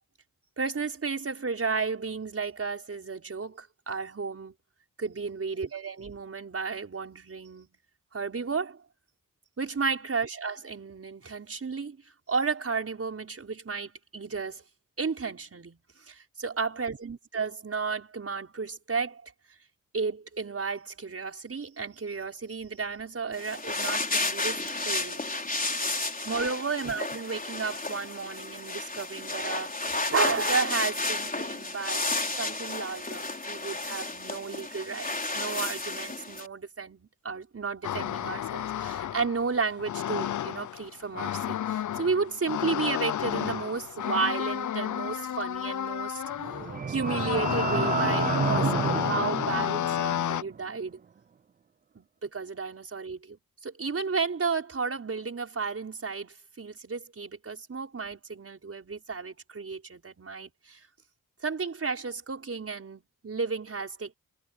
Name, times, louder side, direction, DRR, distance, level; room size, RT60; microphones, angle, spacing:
voice 1, 0.6-4.5 5.0-7.7 8.1-8.8 9.6-12.0 12.3-14.6 15.0-15.8 16.1-19.3 19.9-25.2 26.2-46.2 46.9-51.0 52.0-53.4 53.6-60.8 61.4-64.1, right 4 dB, 45° right, 5.4 m, -33 dB
sound 1, 23.3-36.5, left 2 dB, 25° left, 4.3 m, -32 dB
sound 2, 37.8-50.4, left 10 dB, 65° left, 0.6 m, -31 dB
sound 3, 46.3-50.5, right 6 dB, 30° right, 0.4 m, -30 dB
cardioid pair, 70°, 32 cm